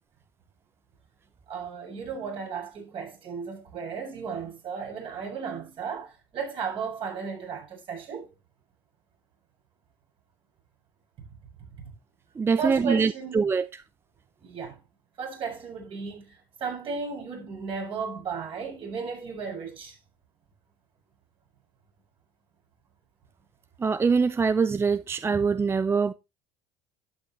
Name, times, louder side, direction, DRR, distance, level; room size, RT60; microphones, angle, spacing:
voice 1, 1.5-8.3 11.8-11.9 12.6-13.5 14.4-14.8 15.2-16.3 16.6-20.0, right 5 dB, 50° right, 7.0 m, -35 dB
voice 2, 12.4-13.1 13.3-13.7 23.8-26.1, right 5 dB, 20° right, 0.4 m, -23 dB
11.5 x 9.0 x 3.1 m
hypercardioid pair, 75°, 12 cm